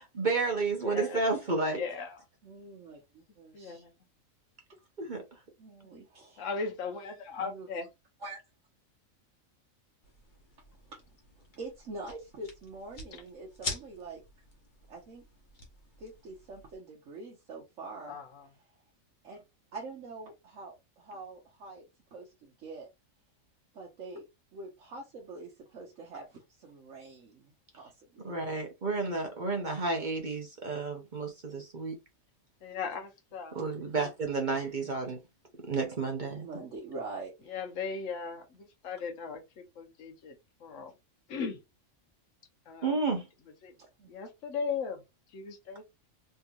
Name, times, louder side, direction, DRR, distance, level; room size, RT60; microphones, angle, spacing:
voice 1, 0.0-1.8 5.0-5.2 28.2-32.0 33.5-35.2 35.6-36.5 42.8-43.3, right 3 dB, 40° right, 0.8 m, -31 dB
voice 2, 0.8-1.2 1.7-2.2 3.5-3.9 6.4-7.9 13.1-13.2 18.1-18.5 32.6-33.6 37.5-40.9 41.3-41.6 42.7-43.0 43.6-43.7 44.1-45.0 45.3-45.8, left 5 dB, 65° left, 1.2 m, -38 dB
voice 3, 2.4-3.8 5.6-6.5 7.4-7.7 8.2-8.4 10.9-11.0 11.4-14.2 14.9-15.2 16.0-18.2 19.2-19.4 19.7-22.9 23.7-24.3 24.5-28.4 36.4-37.5 43.8-44.1, right 3 dB, 65° right, 1.2 m, -45 dB
sound 1, 10.0-16.7, left 3 dB, 40° left, 1.1 m, -45 dB
3.5 x 2.9 x 2.4 m
omnidirectional pair, 1.4 m